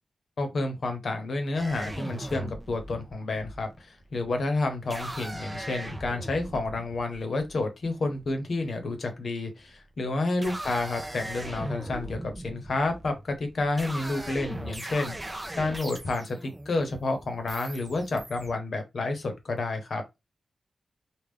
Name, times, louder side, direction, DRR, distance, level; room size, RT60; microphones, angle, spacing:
voice 1, 0.4-20.0, left 2 dB, 65° left, 0.9 m, -30 dB
sound 1, 1.5-8.3 9.4-9.8 10.2-18.5, right 1 dB, 15° right, 0.7 m, -39 dB
3.6 x 2.4 x 3.3 m
wide cardioid pair, 125°, 0 cm